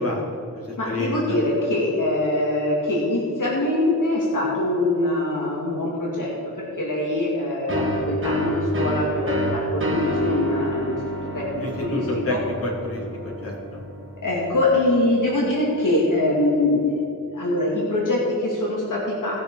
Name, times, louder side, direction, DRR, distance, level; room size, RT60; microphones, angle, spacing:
voice 1, 0.0-1.4 11.3-12.4 12.6-13.8, left 1 dB, 45° left, -4 dB, 3.0 m, -29 dB
voice 2, 0.8-6.3 6.6-11.0 11.3-12.4 14.2-16.9 17.3-19.4, left 1 dB, 65° left, -5 dB, 2.5 m, -23 dB
sound 1, 7.7-15.2, equal, 35° right, 1.8 m, -28 dB
18.0 x 6.6 x 4.8 m, 3.0 s
wide cardioid pair, 110°, 34 cm